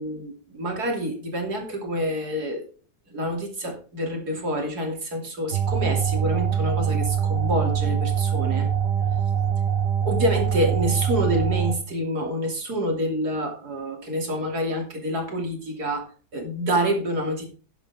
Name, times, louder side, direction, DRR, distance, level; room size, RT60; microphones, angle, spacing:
voice 1, 0.0-2.7 3.1-8.7 10.0-17.5, equal, 65° right, 2 dB, 3.4 m, -27 dB
sound 1, 5.5-11.7, right 8 dB, 80° right, 2.0 m, -23 dB
11.0 x 10.5 x 3.6 m, 0.36 s
omnidirectional pair, 1.8 m